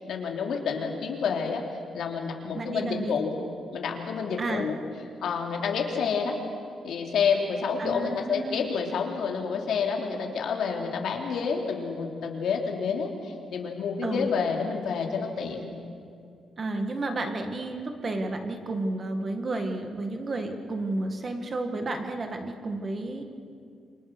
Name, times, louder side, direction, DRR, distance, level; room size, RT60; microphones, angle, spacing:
voice 1, 0.0-1.6 1.9-3.4 3.7-4.8 5.2-6.4 6.8-15.7, left 6 dB, 70° left, 1 dB, 3.4 m, -29 dB
voice 2, 2.5-3.1 4.4-4.7 7.8-8.7 14.0-14.3 16.6-23.2, right 2 dB, 30° right, 5 dB, 1.9 m, -31 dB
29.0 x 24.5 x 6.3 m, 2.4 s
wide cardioid pair, 170°, 0 cm